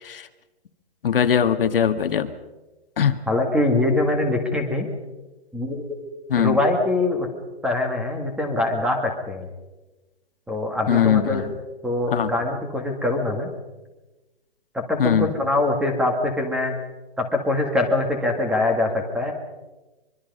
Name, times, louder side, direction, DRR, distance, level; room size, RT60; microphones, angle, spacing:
voice 1, 1.0-2.3 3.0-3.2 6.3-6.6 10.9-11.5 12.1-12.3 15.0-15.3, left 8 dB, 55° left, 9 dB, 1.6 m, -20 dB
voice 2, 3.3-4.9 5.5-5.9 6.4-7.3 7.6-9.5 10.5-11.4 11.8-13.5 14.7-16.7 17.2-19.3, left 2 dB, 5° right, 4 dB, 1.7 m, -23 dB
24.5 x 23.5 x 5.4 m, 1.1 s
hypercardioid pair, 165°, 32 cm